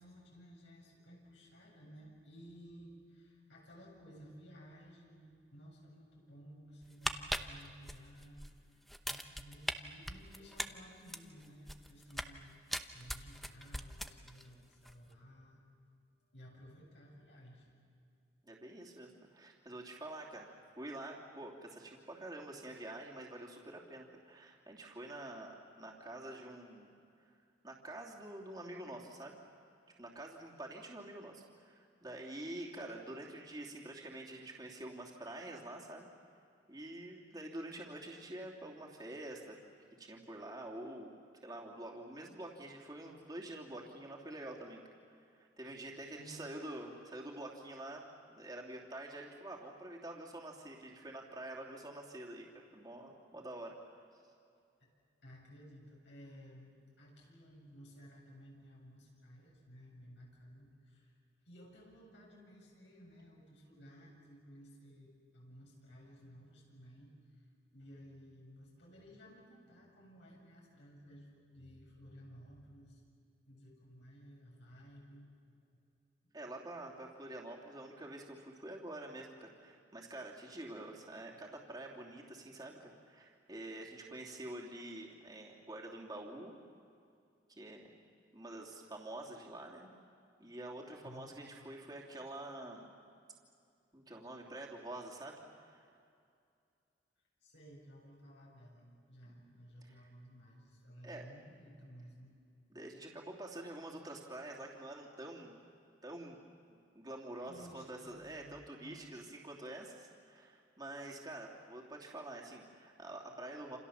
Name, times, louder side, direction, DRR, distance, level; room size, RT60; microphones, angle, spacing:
voice 1, 0.0-12.6 12.9-15.6 16.3-17.7 46.2-46.4 54.8-54.9 55.2-56.7 57.0-61.1 61.4-67.5 67.7-73.0 73.5-75.3 76.2-76.3 91.0-91.4 97.4-102.3 107.4-109.1, equal, 75° left, -2 dB, 7.6 m, -56 dB
sound 1, 6.8-8.5 8.9-9.7 10.1-12.4 12.7-14.5 14.7-14.9, equal, ahead, 0.8 m, -40 dB
voice 2, 18.4-26.9 27.6-29.4 30.0-36.1 36.7-39.6 40.0-41.1 41.4-44.8 45.3-52.5 52.7-54.2 76.3-86.6 87.5-87.9 88.3-89.9 90.4-92.9 93.9-95.9 99.2-99.4 99.8-100.0 101.0-101.3 102.7-105.6 106.0-106.4 106.9-113.8, right 1 dB, 20° right, -2 dB, 2.9 m, -47 dB
28.5 x 28.0 x 7.2 m, 2.4 s
head